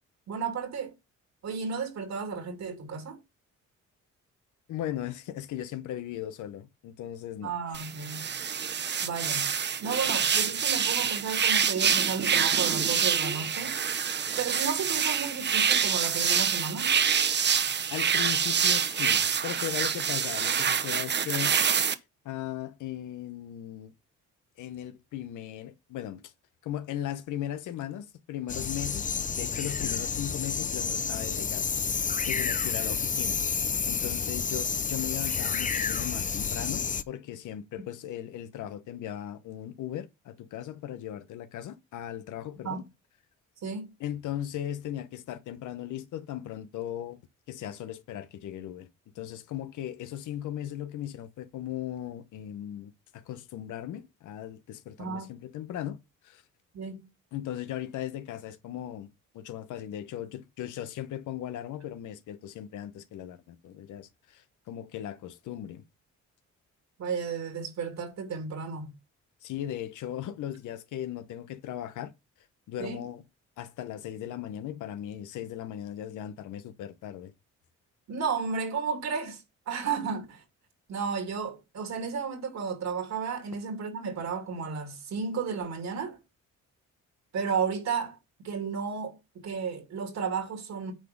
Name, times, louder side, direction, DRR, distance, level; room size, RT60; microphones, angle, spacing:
voice 1, 0.3-0.9 1.4-3.2 7.4-8.2 9.0-9.5 9.8-13.8 14.4-16.9 42.6-42.8 43.6-43.9 55.0-55.3 56.7-57.1 67.0-68.9 72.8-73.1 78.1-80.4 80.9-86.2 87.3-88.2 88.4-89.2 89.4-90.9, right 5 dB, 60° right, 2.7 m, -33 dB
voice 2, 4.7-7.5 17.9-21.5 22.2-23.9 24.6-26.3 26.6-29.1 29.4-31.6 32.0-33.4 33.9-42.9 44.0-47.2 47.5-48.9 49.1-56.0 56.2-56.4 57.3-59.1 59.3-65.8 69.4-72.1 72.7-73.2 73.6-77.3, left 11 dB, 80° left, 0.9 m, -37 dB
sound 1, 7.7-21.9, right 7 dB, 35° right, 0.7 m, -26 dB
sound 2, 28.5-37.0, left 6 dB, 25° left, 0.6 m, -30 dB
9.1 x 4.0 x 5.2 m
cardioid pair, 90°, 30 cm